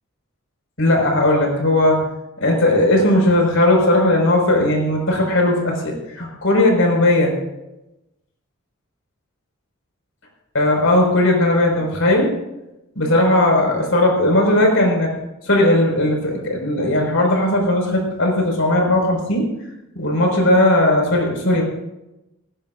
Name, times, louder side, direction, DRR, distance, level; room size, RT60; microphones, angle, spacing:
voice 1, 0.8-2.0 2.4-7.3 10.5-12.3 13.0-15.1 15.4-19.5 20.0-21.6, left 1 dB, 75° left, 1 dB, 5.5 m, -17 dB
19.0 x 18.5 x 2.6 m, 0.93 s
head